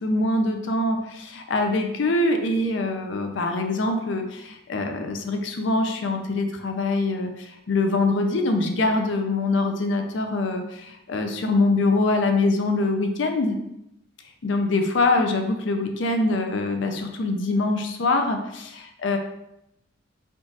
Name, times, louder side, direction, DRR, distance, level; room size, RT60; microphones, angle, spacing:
voice 1, 0.0-13.6 14.4-18.7 19.0-19.2, left 2 dB, 60° left, 5 dB, 0.5 m, -24 dB
3.7 x 2.4 x 3.9 m, 0.83 s
head